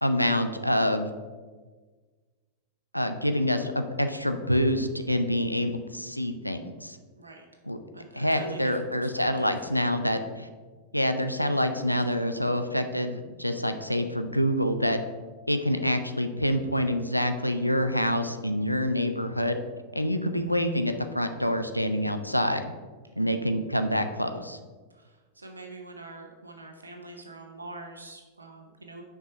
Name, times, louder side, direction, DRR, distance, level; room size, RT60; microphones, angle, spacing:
voice 1, 0.0-1.1 2.9-7.0 7.7-7.8 8.1-10.5 10.9-15.0 15.5-19.6 19.9-22.7 23.2-24.6, equal, 90° left, 7 dB, 0.5 m, -26 dB
voice 2, 7.1-7.5 7.9-9.7 23.1-23.4 24.9-29.0, right 2 dB, 80° right, 3 dB, 0.8 m, -44 dB
6.3 x 4.7 x 5.6 m, 1.4 s
figure-of-eight pair, 90°, 0 cm